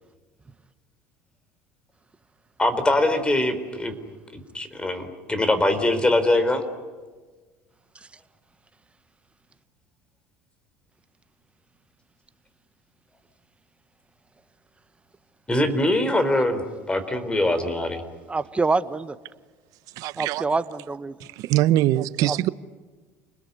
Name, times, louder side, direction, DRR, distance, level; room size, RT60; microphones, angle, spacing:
voice 1, 2.6-4.0 4.3-6.6 15.5-18.0, left 1 dB, 15° left, 4.2 m, -23 dB
voice 2, 18.3-19.2 20.2-21.1 22.3-22.5, right 3 dB, 20° right, 1.2 m, -26 dB
voice 3, 20.0-20.4 21.2-22.5, right 14 dB, 65° right, 0.9 m, -22 dB
29.0 x 20.5 x 9.6 m
supercardioid pair, 85°, 7 cm